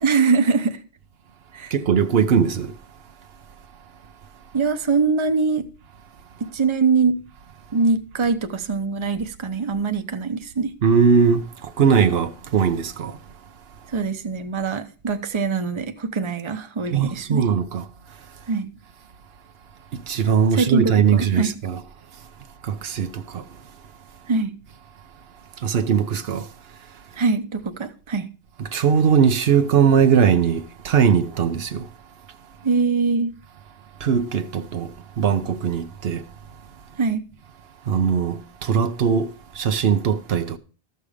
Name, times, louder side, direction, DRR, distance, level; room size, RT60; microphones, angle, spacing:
voice 1, 0.0-0.8 1.5-1.7 4.5-5.6 6.4-7.2 7.7-10.7 13.9-17.5 18.5-18.7 20.5-21.5 24.3-24.6 27.2-28.3 32.6-33.4 37.0-37.2, right 4 dB, 30° right, 0.8 m, -23 dB
voice 2, 1.7-2.7 10.8-11.5 11.8-13.1 16.9-17.8 20.1-21.8 22.6-23.4 25.6-26.5 28.6-31.8 34.0-34.9 35.2-36.2 37.9-39.3 39.6-40.6, right 7 dB, 75° right, 1.0 m, -20 dB
13.0 x 6.8 x 4.9 m
omnidirectional pair, 1.1 m